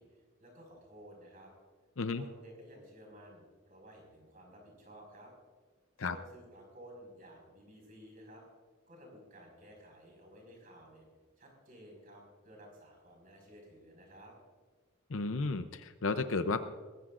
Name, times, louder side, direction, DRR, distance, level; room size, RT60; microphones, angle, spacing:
voice 1, 0.0-1.5 2.2-5.3 6.0-8.4 8.9-11.0 11.4-14.3, equal, 40° right, 1 dB, 5.1 m, -54 dB
voice 2, 15.1-16.7, left 3 dB, 75° left, 10 dB, 0.7 m, -33 dB
22.0 x 16.0 x 2.5 m, 1.5 s
head